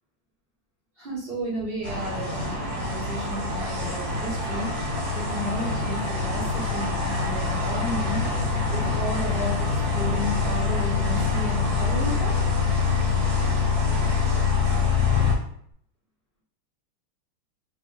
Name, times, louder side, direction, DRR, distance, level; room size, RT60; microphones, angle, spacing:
voice 1, 1.0-4.7 5.1-12.4, equal, 35° right, -7 dB, 1.1 m, -33 dB
sound 1, 1.8-15.3, equal, 65° right, 1.8 m, -29 dB
sound 2, 2.0-15.3, left 7 dB, 80° left, 1.4 m, -26 dB
3.8 x 3.4 x 3.0 m, 0.65 s
omnidirectional pair, 2.3 m